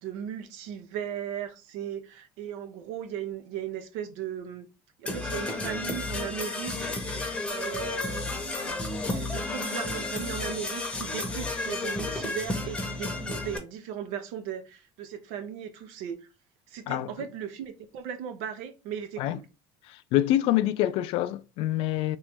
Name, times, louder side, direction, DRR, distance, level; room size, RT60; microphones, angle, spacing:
voice 1, 0.0-4.7 5.0-6.9 7.5-8.3 9.1-16.3 16.7-19.5, right 9 dB, 80° right, 0.7 m, -37 dB
Percussion / Brass instrument, 5.1-13.6, left 2 dB, 10° left, 0.8 m, -32 dB
voice 2, 19.9-22.2, left 13 dB, 60° left, 0.3 m, -26 dB
3.0 x 3.0 x 3.4 m
cardioid pair, 150°, 11 cm